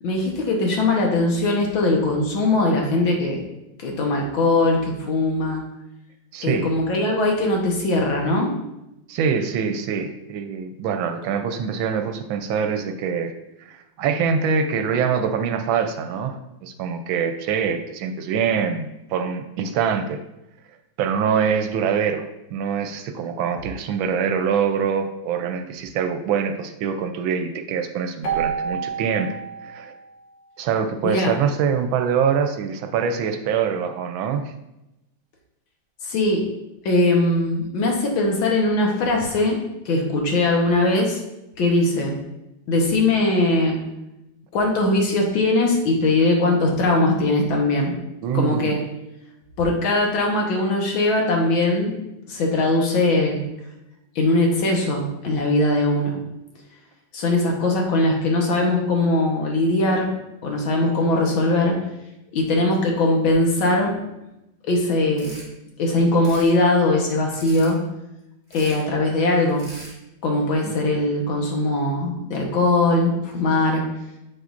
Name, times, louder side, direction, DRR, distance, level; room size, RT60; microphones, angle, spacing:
voice 1, 0.0-3.4 3.8-5.6 6.4-8.5 31.0-31.3 36.0-36.4 36.9-39.6 39.9-41.2 41.6-42.2 42.7-43.8 44.5-47.9 48.3-48.8 49.6-52.0 52.3-53.4 54.2-56.2 57.1-60.1 60.4-61.8 62.3-64.0 64.6-65.3 65.8-67.8 68.5-69.7 70.2-73.8, left 2 dB, 85° left, 0 dB, 2.0 m, -20 dB
voice 2, 6.3-6.7 9.1-13.3 13.7-20.2 21.0-29.3 29.6-29.9 30.6-34.5 48.2-48.8 70.6-70.7, right 6 dB, 85° right, 7 dB, 1.4 m, -24 dB
Keyboard (musical), 28.2-30.9, right 7 dB, 35° left, 1.5 m, -30 dB
sound 1, 65.2-65.5 66.1-66.5 67.3-67.7 68.5-68.8 69.5-69.9, right 1 dB, 15° left, 1.9 m, -41 dB
7.5 x 6.4 x 2.5 m, 0.91 s
omnidirectional pair, 2.1 m